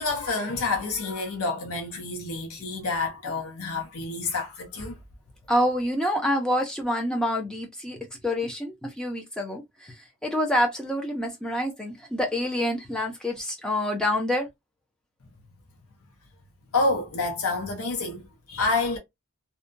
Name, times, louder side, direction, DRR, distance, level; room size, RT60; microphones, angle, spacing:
voice 1, 0.0-5.0 16.7-19.0, left 3 dB, 80° left, 0.7 m, -28 dB
voice 2, 5.5-8.0 8.2-9.6 10.2-14.5, equal, 5° left, 0.5 m, -27 dB
2.7 x 2.2 x 2.5 m
head